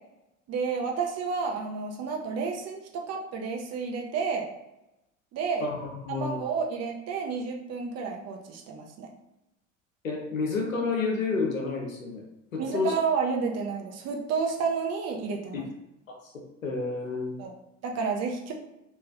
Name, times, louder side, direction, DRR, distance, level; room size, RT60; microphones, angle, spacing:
voice 1, 0.5-4.5 5.3-5.7 6.1-9.1 12.6-15.7 17.4-17.5 17.8-18.5, right 5 dB, 40° right, 1 dB, 0.8 m, -30 dB
voice 2, 5.6-6.4 10.0-12.2 12.5-12.9 15.5-15.6 16.1-17.3, left 4 dB, 90° left, 1 dB, 0.7 m, -30 dB
3.2 x 2.9 x 2.3 m, 0.92 s
figure-of-eight pair, 70°, 39 cm